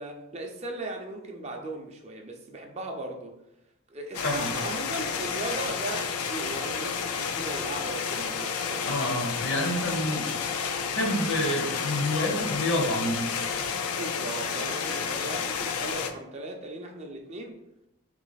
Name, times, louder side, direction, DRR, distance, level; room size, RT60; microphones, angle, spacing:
voice 1, 0.0-3.3 3.9-9.0 13.9-17.6, right 2 dB, 30° right, 2 dB, 0.4 m, -38 dB
sound 1, 4.1-16.1, left 6 dB, 85° left, 0.4 m, -31 dB
voice 2, 8.9-10.4 10.8-13.3, left 1 dB, 55° left, 2 dB, 0.8 m, -28 dB
3.3 x 3.1 x 4.0 m, 0.85 s
head